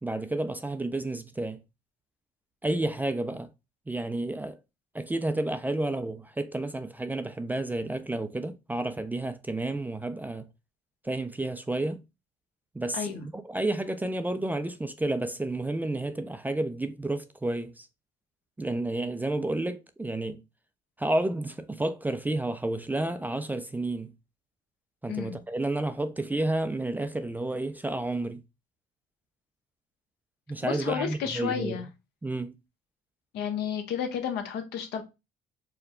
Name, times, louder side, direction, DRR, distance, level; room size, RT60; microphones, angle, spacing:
voice 1, 0.0-1.6 2.6-3.5 3.9-4.6 4.9-10.5 11.0-12.0 12.7-17.9 18.6-20.4 21.0-24.1 25.0-28.4 30.5-31.7 32.2-32.6, right 2 dB, 10° right, 0.3 m, -31 dB
voice 2, 12.9-13.3 25.1-25.4 30.6-31.9 33.3-35.0, left 8 dB, 80° left, 1.0 m, -32 dB
4.5 x 2.2 x 3.6 m
cardioid pair, 110°, 17 cm